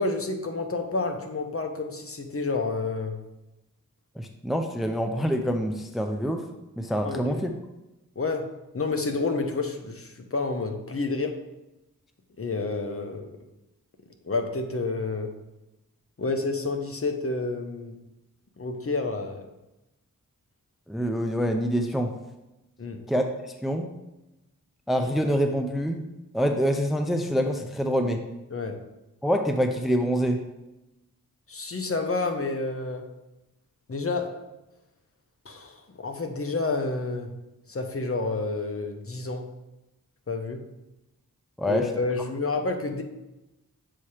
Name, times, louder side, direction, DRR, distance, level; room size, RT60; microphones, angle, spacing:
voice 1, 0.0-3.2 7.0-7.4 8.2-11.4 12.4-13.4 14.2-15.3 16.2-18.0 18.6-19.5 22.8-23.1 28.5-28.8 31.5-33.1 33.9-34.5 35.4-37.4 37.7-39.5 40.3-40.7 41.6-43.0, left 3 dB, 40° left, 5 dB, 0.8 m, -29 dB
voice 2, 4.2-6.4 6.8-7.5 20.9-22.1 23.1-23.9 24.9-26.1 26.3-28.2 29.2-30.4 41.6-41.9, equal, ahead, 5 dB, 0.5 m, -26 dB
7.4 x 2.8 x 4.9 m, 0.97 s
cardioid pair, 45°, 35 cm